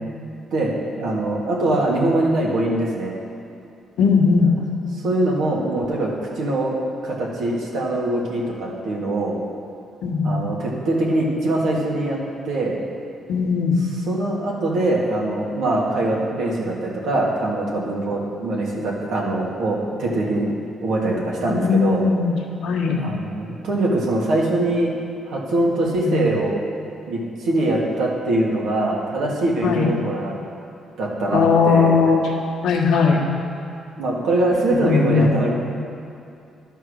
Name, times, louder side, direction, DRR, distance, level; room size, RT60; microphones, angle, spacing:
voice 1, 1.0-3.1 4.9-6.8 7.0-9.4 10.2-12.2 12.5-12.8 14.1-20.5 20.8-22.0 22.9-24.9 25.3-26.6 27.1-30.3 31.0-32.0 34.0-35.5, right 1 dB, 75° right, -3 dB, 1.9 m, -22 dB
voice 2, 4.0-4.6 10.0-10.5 13.3-13.8 21.4-22.4 22.6-23.0 26.0-26.3 29.6-29.9 31.3-32.2 32.6-33.2 34.7-35.4, left 5 dB, 80° left, -1 dB, 1.4 m, -18 dB
12.0 x 4.5 x 6.4 m, 2.5 s
cardioid pair, 90°, 0 cm